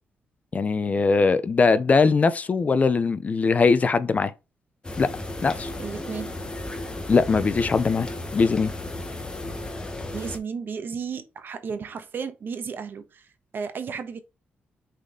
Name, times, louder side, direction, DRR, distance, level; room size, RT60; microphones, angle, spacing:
voice 1, 0.5-4.3 5.0-5.1 5.4-5.7 7.1-8.1 8.3-8.7, left 4 dB, 35° left, 0.6 m, -21 dB
sound 1, 4.8-10.4, left 2 dB, 20° left, 1.3 m, -34 dB
voice 2, 5.8-6.4 10.1-13.3 13.5-14.2, right 6 dB, 55° right, 1.2 m, -33 dB
6.5 x 4.2 x 3.8 m
cardioid pair, 95°, 4 cm